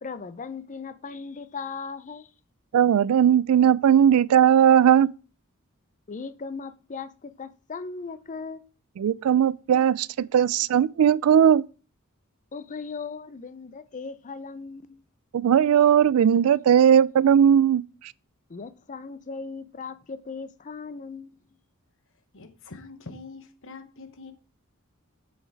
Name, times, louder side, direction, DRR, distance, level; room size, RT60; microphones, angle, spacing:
voice 1, 0.0-2.3 6.1-8.6 12.5-15.0 18.5-21.4, left 4 dB, 35° left, 0.5 m, -38 dB
voice 2, 2.7-5.1 9.0-11.6 15.4-17.8, right 9 dB, 75° right, 0.3 m, -18 dB
voice 3, 22.3-24.3, left 3 dB, 65° left, 1.1 m, -44 dB
6.7 x 6.3 x 4.6 m
head